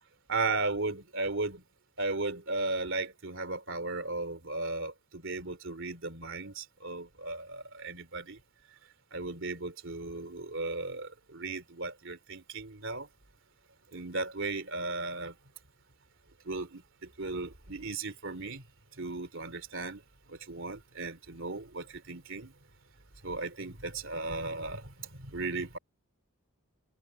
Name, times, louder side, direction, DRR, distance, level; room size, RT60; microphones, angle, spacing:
voice 1, 0.3-1.6 2.0-8.4 9.1-13.1 13.9-15.3 16.4-18.6 19.0-20.0 20.3-22.5 23.2-25.8, right 3 dB, 60° right, 3.4 m, -36 dB
head